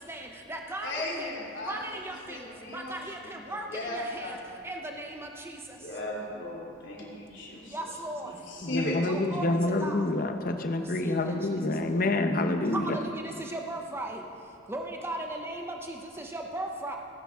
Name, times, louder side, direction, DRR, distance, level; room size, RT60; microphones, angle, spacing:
voice 1, 0.1-1.3 1.7-2.4 2.7-4.4 4.6-5.6 7.7-8.3 9.1-9.5 9.8-10.0 11.0-11.1 12.7-14.2 14.7-17.0, right 1 dB, 10° right, 2 dB, 0.7 m, -37 dB
voice 2, 0.8-1.8 2.3-4.4 5.8-7.8 8.3-9.4, left 1 dB, 65° left, -4 dB, 3.1 m, -36 dB
voice 3, 8.6-13.0, left 2 dB, 45° left, 6 dB, 0.8 m, -27 dB
18.5 x 10.5 x 3.6 m, 2.5 s
head